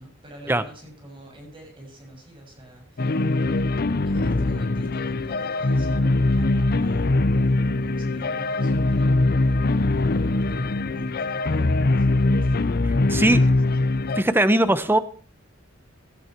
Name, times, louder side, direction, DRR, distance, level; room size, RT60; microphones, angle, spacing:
voice 1, 0.0-3.7 4.0-12.6 13.5-13.7, right 1 dB, 25° right, 1 dB, 7.1 m, -45 dB
sound 1, 3.0-14.2, left 2 dB, 50° left, 0.7 m, -22 dB
voice 2, 12.8-13.4 14.2-15.0, right 1 dB, 10° right, 12 dB, 0.9 m, -20 dB
17.5 x 12.0 x 4.6 m, 0.38 s
head